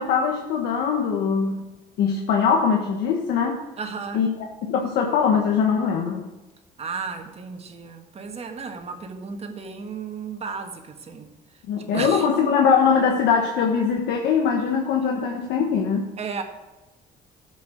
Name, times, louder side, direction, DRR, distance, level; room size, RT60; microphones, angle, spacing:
voice 1, 0.0-1.6 2.0-3.6 4.1-6.3 11.7-16.1, left 6 dB, 80° left, 2 dB, 1.3 m, -22 dB
voice 2, 3.8-4.2 6.8-11.3 11.8-12.3 16.2-16.4, right 5 dB, 40° right, 5 dB, 1.7 m, -34 dB
11.5 x 7.6 x 6.3 m, 1.1 s
cardioid pair, 110°, 17 cm